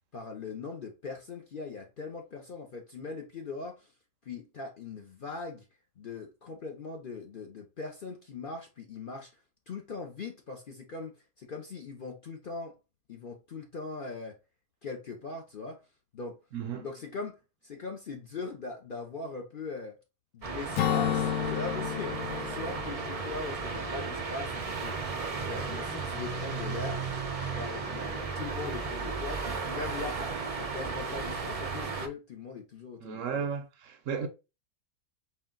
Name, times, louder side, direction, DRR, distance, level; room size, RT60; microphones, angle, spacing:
voice 1, 0.1-3.9 4.2-5.6 6.0-9.3 9.7-12.7 13.1-14.4 14.8-15.8 16.1-16.4 16.8-17.4 17.6-20.0 20.3-25.0 25.5-27.0 27.5-33.5 34.2-34.3, left 4 dB, 50° left, 0.7 m, -40 dB
voice 2, 16.5-16.9 33.0-34.3, right 7 dB, 70° right, 0.9 m, -34 dB
sound 1, 20.4-32.1, right 4 dB, 45° right, 0.5 m, -35 dB
Acoustic guitar / Strum, 20.8-24.4, left 10 dB, 80° left, 1.0 m, -32 dB
4.4 x 2.4 x 3.7 m
omnidirectional pair, 1.6 m